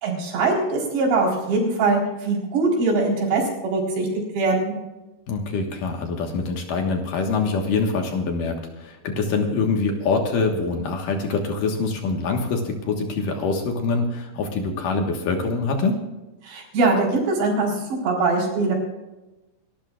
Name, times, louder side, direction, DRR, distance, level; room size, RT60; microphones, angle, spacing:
voice 1, 0.0-4.1 4.3-4.7 16.4-18.8, right 3 dB, 90° right, -2 dB, 6.2 m, -22 dB
voice 2, 5.3-16.0, left 4 dB, 65° left, 3 dB, 2.7 m, -24 dB
28.5 x 13.0 x 2.4 m, 1.0 s
omnidirectional pair, 4.8 m